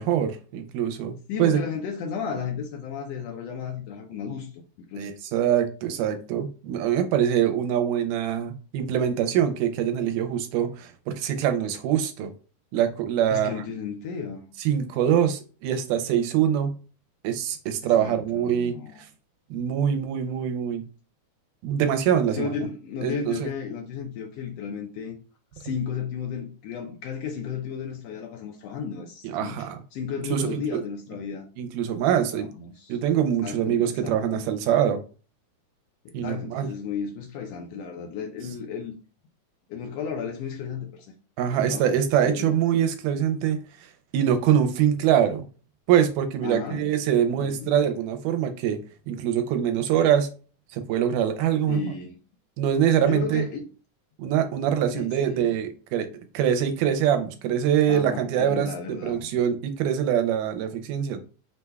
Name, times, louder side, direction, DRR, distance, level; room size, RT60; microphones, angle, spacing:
voice 1, 0.0-1.1 1.4-1.6 5.0-12.3 12.7-13.6 14.6-16.7 17.2-19.1 19.5-20.8 21.6-22.6 23.0-23.5 29.2-29.8 30.3-30.8 31.6-32.5 32.9-35.0 36.1-36.7 41.4-45.5 45.9-48.8 49.1-50.3 50.7-51.8 52.6-53.4 54.2-56.1 56.3-61.2, right 9 dB, 85° right, 2.2 m, -24 dB
voice 2, 1.3-4.5 4.9-5.1 13.3-14.4 17.8-19.0 22.3-25.2 25.5-31.5 32.3-33.0 33.4-34.5 36.0-38.9 39.7-41.1 41.5-41.9 42.2-42.5 46.4-46.9 47.3-47.7 51.7-52.2 53.0-53.7 54.9-55.5 57.9-59.2, left 6 dB, 90° left, 1.4 m, -34 dB
5.5 x 2.3 x 3.3 m
omnidirectional pair, 3.6 m